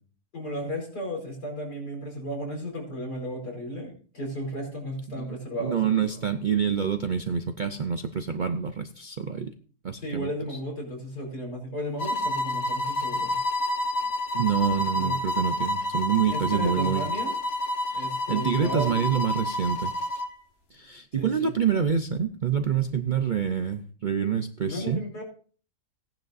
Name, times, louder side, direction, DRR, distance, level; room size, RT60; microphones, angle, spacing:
voice 1, 0.3-5.8 10.0-13.4 15.0-15.2 16.3-17.3 17.9-19.0 21.2-21.5 24.6-25.2, equal, 85° left, -1 dB, 5.3 m, -34 dB
voice 2, 5.1-9.5 9.8-10.6 14.3-17.1 17.9-19.9 20.7-25.0, right 7 dB, 60° right, 8 dB, 0.5 m, -27 dB
sound 1, 12.0-20.4, left 1 dB, 45° left, 1.2 m, -29 dB
17.5 x 10.5 x 2.6 m, 0.41 s
omnidirectional pair, 1.7 m